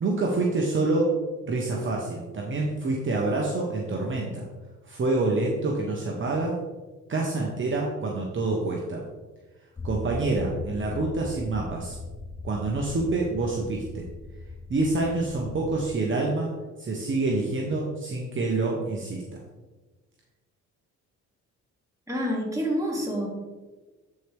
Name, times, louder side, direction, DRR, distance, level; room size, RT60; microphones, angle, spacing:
voice 1, 0.0-1.2 1.4-4.5 4.8-6.6 7.1-9.0 9.8-11.9 12.4-14.0 14.7-19.4, right 2 dB, 40° right, -1 dB, 1.2 m, -27 dB
sound 1, 9.8-15.9, left 3 dB, 20° left, 0.4 m, -39 dB
voice 2, 22.1-23.3, equal, 10° right, -3 dB, 2.8 m, -27 dB
12.5 x 4.7 x 3.6 m, 1.3 s
cardioid pair, 90°, 30 cm